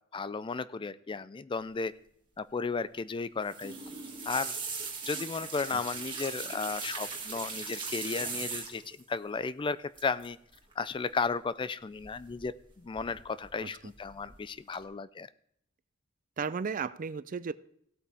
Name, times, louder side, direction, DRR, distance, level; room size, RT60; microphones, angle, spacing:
voice 1, 0.1-1.9 2.4-4.0 4.2-4.6 5.0-10.4 10.8-15.3, left 4 dB, 25° left, 0.4 m, -34 dB
sound 1, 3.4-9.0 10.0-10.3 10.5-10.9 12.0-12.6 12.9-13.5 13.9-14.3 14.7-14.8, right 4 dB, 25° right, 2.2 m, -39 dB
voice 2, 13.6-13.9 16.4-17.5, right 5 dB, 40° right, 0.4 m, -35 dB
17.0 x 8.5 x 3.4 m
head